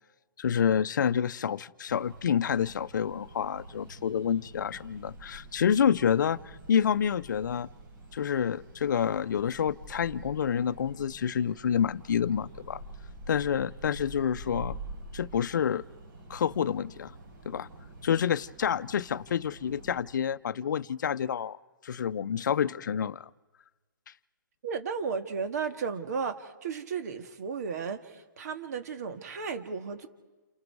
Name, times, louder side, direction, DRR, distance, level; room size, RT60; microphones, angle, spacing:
voice 1, 0.4-7.7 8.1-12.8 13.3-14.8 15.1-15.8 16.3-17.1 17.4-17.7 18.0-21.6 21.8-23.3, left 8 dB, 65° left, 13 dB, 0.7 m, -28 dB
sound 1, 1.9-20.0, right 1 dB, 85° right, 7.3 m, -47 dB
voice 2, 24.6-30.1, right 5 dB, 55° right, 7 dB, 2.0 m, -34 dB
29.0 x 27.5 x 4.8 m, 1.2 s
hypercardioid pair, 145°, 11 cm